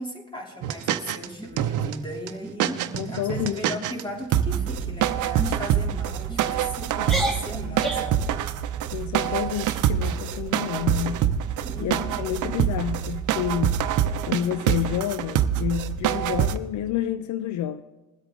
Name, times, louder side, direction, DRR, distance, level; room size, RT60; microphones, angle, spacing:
voice 1, 0.0-8.3 11.6-12.6, equal, 15° left, 3.0 m, -37 dB
sound 1, 0.6-1.3 1.6-1.9 2.3-2.4 2.6-4.0 4.3-16.6, right 10 dB, 80° right, 0.7 m, -25 dB
sound 2, 1.2-1.9 2.3-2.5 2.9-3.2 3.6-3.9 4.5-4.9 5.4-5.6 6.3-6.6 7.0-8.2, right 1 dB, ahead, 2.0 m, -32 dB
voice 2, 3.0-3.7 8.9-11.2 11.8-13.8 14.3-17.8, left 10 dB, 70° left, 0.6 m, -29 dB
21.0 x 8.2 x 3.7 m
cardioid pair, 90°, 30 cm